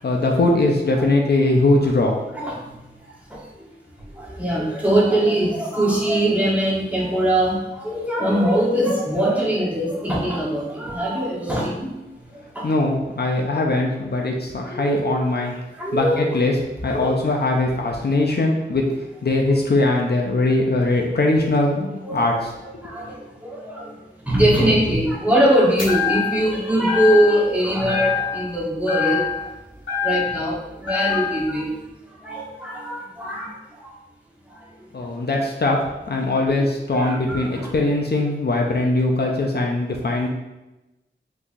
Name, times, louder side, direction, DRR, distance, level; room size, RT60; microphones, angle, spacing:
voice 1, 0.0-2.2 12.6-15.5 15.9-16.5 16.8-18.9 19.2-22.5 34.9-40.3, left 2 dB, 55° left, 1 dB, 0.4 m, -21 dB
voice 2, 4.1-11.9 12.5-12.7 14.6-15.0 15.8-16.4 16.9-17.1 22.0-22.3 22.8-23.9 24.3-29.5 30.0-31.7 32.2-33.5 33.8-33.9 36.9-37.7, right 1 dB, 5° right, -5 dB, 1.0 m, -22 dB
sound 1, 25.8-26.5 26.9-27.5 27.9-28.6 28.9-30.5 30.9-31.5, left 7 dB, 85° left, 1.1 m, -25 dB
3.7 x 2.8 x 2.6 m, 1.0 s
wide cardioid pair, 55°, 20 cm